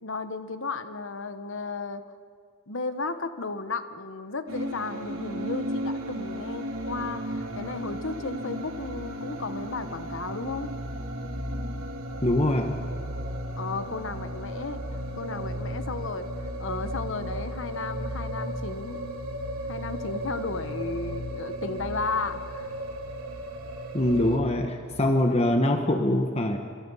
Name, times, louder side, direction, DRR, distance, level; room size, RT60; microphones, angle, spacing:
voice 1, 0.0-2.0 2.7-10.7 13.6-14.8 15.1-16.3 16.6-19.0 19.7-22.7, left 3 dB, 60° left, 10 dB, 1.2 m, -34 dB
sound 1, 4.5-24.4, equal, 80° right, 3.6 m, -34 dB
voice 2, 12.2-12.7 23.9-26.6, left 1 dB, 30° left, 5 dB, 1.2 m, -23 dB
27.5 x 26.5 x 5.7 m, 2.3 s
head